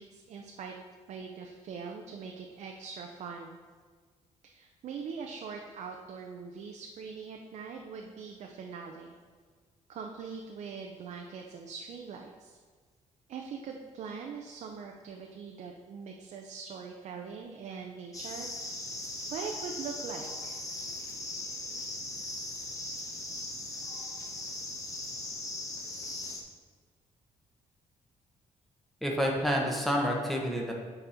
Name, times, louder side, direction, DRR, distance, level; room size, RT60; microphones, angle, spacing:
voice 1, 0.0-3.6 4.4-9.1 9.9-12.6 13.3-18.8 19.3-20.6, right 5 dB, 60° right, 1 dB, 0.6 m, -42 dB
sound 1, 18.1-26.4, left 2 dB, 25° left, 0.9 m, -39 dB
voice 2, 29.0-30.7, equal, ahead, -1 dB, 1.0 m, -28 dB
6.8 x 4.3 x 5.0 m, 1.5 s
cardioid pair, 145°, 13 cm